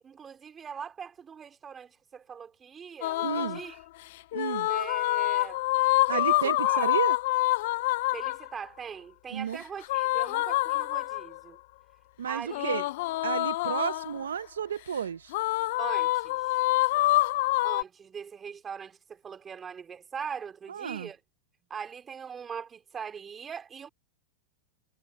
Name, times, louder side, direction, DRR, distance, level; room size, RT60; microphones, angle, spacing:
voice 1, 0.0-3.8 4.7-5.6 6.1-6.3 6.6-6.9 8.1-11.6 12.2-12.7 15.8-16.6 17.6-21.2 21.7-23.9, right 7 dB, 20° right, 3.4 m, -41 dB
sound 1, 3.0-3.6 4.3-8.5 9.8-11.4 12.5-14.2 15.3-17.8, left 19 dB, 65° left, 0.3 m, -26 dB
voice 2, 3.2-3.6 4.3-4.7 6.1-7.1 9.3-9.6 12.2-12.8 13.2-15.3 20.7-21.1, right 7 dB, 90° right, 0.7 m, -32 dB
hypercardioid pair, 115°, 0 cm